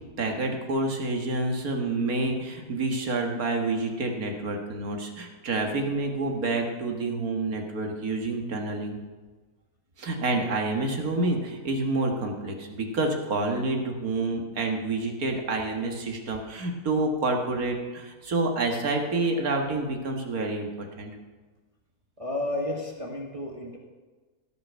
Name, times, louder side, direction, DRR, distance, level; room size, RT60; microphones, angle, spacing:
voice 1, 0.2-9.0 10.0-21.1, right 2 dB, 75° right, 2 dB, 2.1 m, -28 dB
voice 2, 22.2-23.8, left 1 dB, 25° right, -1 dB, 1.5 m, -32 dB
16.5 x 6.2 x 6.4 m, 1.3 s
omnidirectional pair, 1.5 m